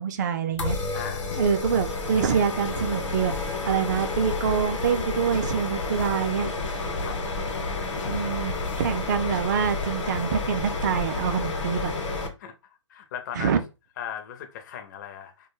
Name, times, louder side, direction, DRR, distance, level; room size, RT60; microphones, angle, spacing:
voice 1, 0.0-0.8 1.3-3.3 3.7-6.5 8.0-11.9 13.3-13.6, right 7 dB, 35° right, 0.4 m, -26 dB
sound 1, 0.6-1.0 1.3-3.7 4.0-6.3 6.6-9.0 9.3-11.3, left 3 dB, 90° left, 0.6 m, -39 dB
sound 2, 0.6-12.3, left 3 dB, 70° left, 0.9 m, -30 dB
voice 2, 0.9-1.4 7.0-7.2 11.8-11.9 12.4-12.5 12.9-13.6 14.0-15.5, left 9 dB, 35° left, 0.5 m, -38 dB
2.2 x 2.2 x 3.0 m
hypercardioid pair, 150°, 16 cm